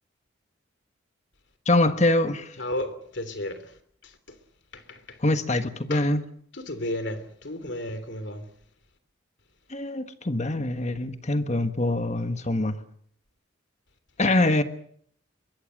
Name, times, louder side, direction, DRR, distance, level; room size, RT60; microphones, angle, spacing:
voice 1, 1.6-2.6 5.2-6.2 9.7-12.8 14.2-14.6, left 2 dB, 35° left, 1.4 m, -24 dB
voice 2, 2.6-3.7 4.0-4.1 4.7-5.2 5.9-6.0 6.6-8.4, left 1 dB, 60° left, 3.3 m, -33 dB
22.5 x 22.5 x 6.5 m
head